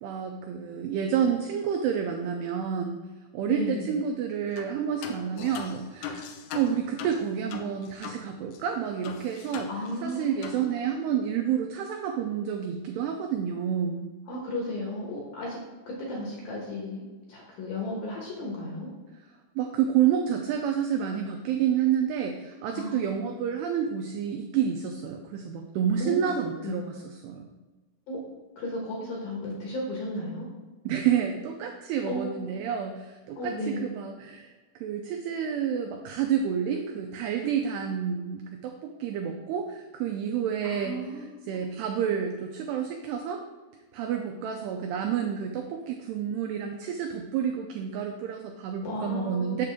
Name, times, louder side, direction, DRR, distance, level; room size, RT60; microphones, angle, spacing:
voice 1, 0.0-3.0 3.3-9.7 10.0-14.1 19.6-27.5 30.9-33.6 33.8-41.0 41.5-43.4 43.9-49.7, right 8 dB, 85° right, 3 dB, 2.3 m, -29 dB
voice 2, 3.5-3.9 9.7-10.9 14.3-15.6 15.9-18.9 22.8-23.2 26.0-26.9 28.1-28.2 28.6-30.5 32.1-32.3 33.3-33.8 40.6-41.6 48.8-49.7, left 1 dB, 65° left, -2 dB, 2.4 m, -34 dB
sound 1, 4.6-4.7 5.0-8.2 8.5-8.6 9.0-10.1 10.4-10.6, left 7 dB, 90° left, 3.1 m, -40 dB
7.6 x 6.6 x 3.6 m, 1.2 s
omnidirectional pair, 5.4 m